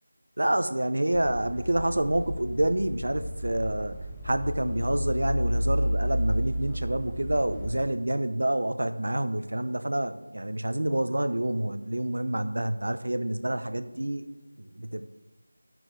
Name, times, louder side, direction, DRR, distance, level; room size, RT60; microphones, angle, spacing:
voice 1, 0.4-4.0 4.2-14.2 14.6-15.1, right 1 dB, 75° right, 10 dB, 0.6 m, -28 dB
sound 1, 1.1-7.7, equal, ahead, 0.6 m, -31 dB
12.5 x 6.1 x 3.3 m, 1.1 s
figure-of-eight pair, 175°, 0 cm